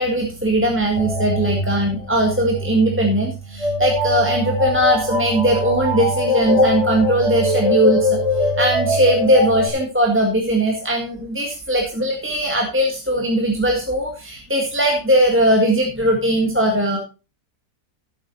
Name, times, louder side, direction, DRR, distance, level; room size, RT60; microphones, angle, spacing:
voice 1, 0.0-17.0, right 1 dB, 5° right, 0 dB, 1.7 m, -19 dB
sound 1, 1.0-9.7, left 1 dB, 20° left, 2.8 m, -23 dB
13.0 x 8.0 x 4.1 m, 0.32 s
omnidirectional pair, 1.8 m